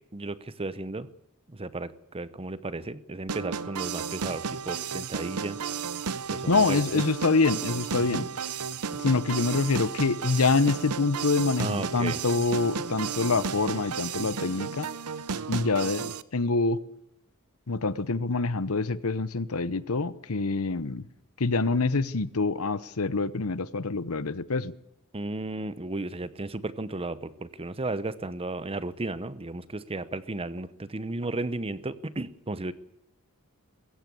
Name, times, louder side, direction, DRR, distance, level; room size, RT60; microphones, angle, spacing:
voice 1, 0.1-1.1 1.5-5.6 6.3-7.0 8.0-8.3 11.6-12.2 25.1-32.7, right 2 dB, 25° right, 15 dB, 0.9 m, -34 dB
sound 1, 3.3-16.2, right 6 dB, 85° right, 0.8 m, -33 dB
voice 2, 6.5-8.3 8.9-14.9 15.5-16.8 17.7-21.0 21.4-24.7, left 3 dB, 70° left, 16 dB, 1.0 m, -26 dB
21.5 x 16.0 x 8.5 m, 0.80 s
head